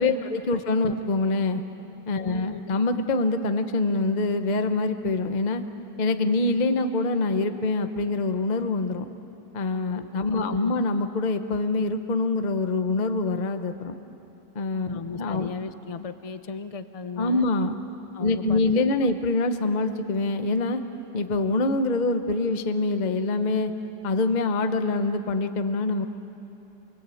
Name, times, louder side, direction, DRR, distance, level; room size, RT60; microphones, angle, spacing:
voice 1, 0.0-1.6 2.1-5.6 6.0-9.1 9.5-14.0 14.5-15.5 17.2-17.8 18.2-20.8 21.1-23.7 24.0-26.1, left 3 dB, 30° left, 8 dB, 0.8 m, -25 dB
voice 2, 2.2-2.8 9.9-10.7 14.9-17.5 18.1-19.1, left 4 dB, 45° left, 10 dB, 0.4 m, -36 dB
28.0 x 21.5 x 8.5 m, 3.0 s
omnidirectional pair, 2.0 m